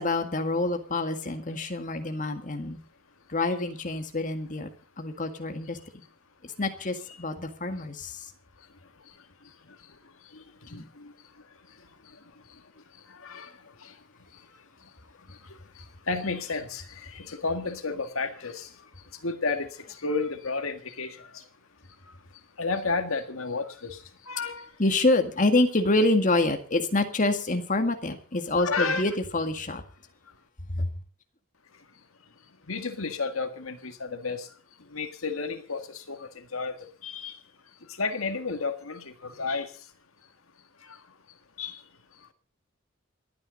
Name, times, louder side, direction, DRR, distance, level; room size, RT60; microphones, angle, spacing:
voice 1, 0.0-2.8 3.3-4.7 5.0-5.8 6.6-8.2 10.7-10.8 24.8-29.8 30.8-30.9, left 2 dB, 40° left, 1.8 m, -26 dB
voice 2, 10.7-11.1 13.1-13.5 13.8-13.9 15.3-18.7 19.2-21.4 22.6-24.0 24.3-24.7 28.6-29.1 32.7-34.5 34.9-37.3 38.0-39.7 40.9-41.0 41.6-41.8, left 4 dB, 90° left, 1.8 m, -32 dB
28.0 x 9.6 x 4.0 m
head